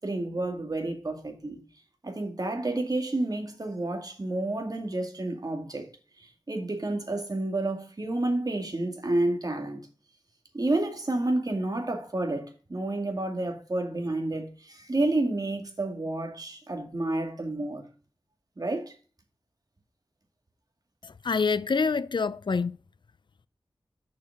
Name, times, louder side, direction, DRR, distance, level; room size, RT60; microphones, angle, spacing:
voice 1, 0.0-1.6 2.0-5.9 6.2-9.8 10.5-17.9 18.6-18.9, right 2 dB, 45° right, 2.3 m, -30 dB
voice 2, 21.0-22.8, left 5 dB, 60° left, 0.5 m, -26 dB
7.3 x 6.4 x 4.7 m
wide cardioid pair, 60°, 9 cm